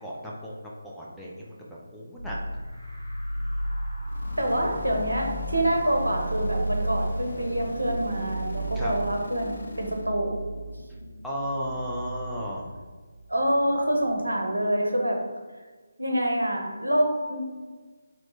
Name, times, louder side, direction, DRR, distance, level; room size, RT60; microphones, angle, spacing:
voice 1, 0.0-2.4 8.8-8.9 11.2-12.7, equal, ahead, -7 dB, 0.5 m, -35 dB
sound 1, 2.2-13.5, right 1 dB, 30° right, 1.3 m, -34 dB
sound 2, 4.1-10.2, left 1 dB, 55° left, 0.5 m, -41 dB
voice 2, 4.4-10.4 13.3-15.2 16.0-17.4, right 1 dB, 85° right, 1 dB, 0.9 m, -26 dB
3.1 x 2.9 x 4.0 m, 1.4 s
figure-of-eight pair, 155°, 0 cm